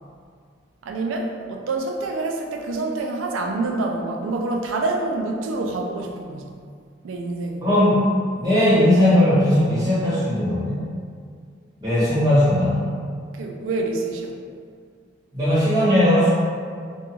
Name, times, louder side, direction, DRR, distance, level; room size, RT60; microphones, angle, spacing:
voice 1, 0.8-6.4 7.0-7.7 13.3-14.4, right 2 dB, 90° right, 2 dB, 0.3 m, -27 dB
voice 2, 7.6-8.1 8.3-10.8 11.8-12.9 15.3-16.3, left 1 dB, 20° right, -12 dB, 1.2 m, -18 dB
2.5 x 2.2 x 2.9 m, 2.1 s
head